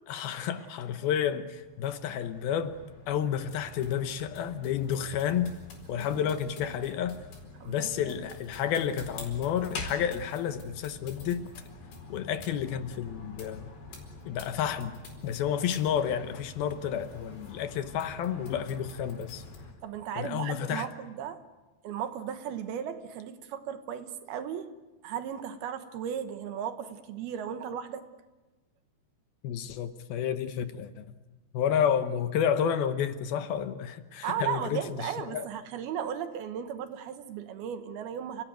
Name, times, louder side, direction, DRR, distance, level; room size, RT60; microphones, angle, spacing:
voice 1, 0.1-2.8 3.1-5.5 5.9-7.2 7.7-11.5 12.1-13.7 14.3-19.4 20.2-20.9 29.4-31.1 31.5-35.5, left 8 dB, 75° left, 2.6 m, -30 dB
sound 1, 1.3-19.7, left 3 dB, 90° left, 6.7 m, -46 dB
voice 2, 5.9-6.2 6.6-6.7 7.6-8.2 19.8-21.4 21.8-24.7 25.0-28.0 34.2-38.4, right 8 dB, 70° right, 3.0 m, -36 dB
29.5 x 17.5 x 9.1 m
omnidirectional pair, 4.8 m